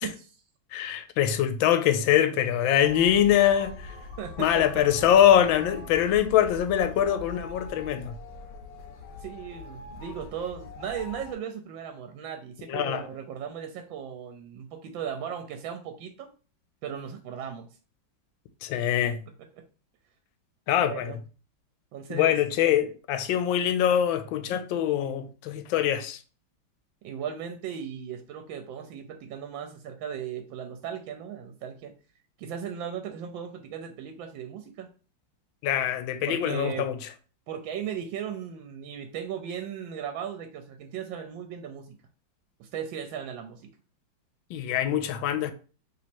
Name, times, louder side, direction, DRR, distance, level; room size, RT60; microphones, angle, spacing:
voice 1, 0.0-0.3 4.2-4.9 9.2-16.3 16.8-17.7 20.8-21.2 21.9-22.3 27.0-31.9 32.4-34.9 36.3-36.9 37.5-42.0 42.6-43.6, right 8 dB, 85° right, 1.3 m, -37 dB
voice 2, 0.7-3.9 4.4-8.1 12.7-13.0 18.6-19.2 20.7-21.1 22.1-26.2 35.6-37.0 44.5-45.5, left 10 dB, 85° left, 1.3 m, -23 dB
sound 1, 2.8-11.3, left 3 dB, 60° left, 1.1 m, -43 dB
3.2 x 2.9 x 4.3 m
omnidirectional pair, 2.1 m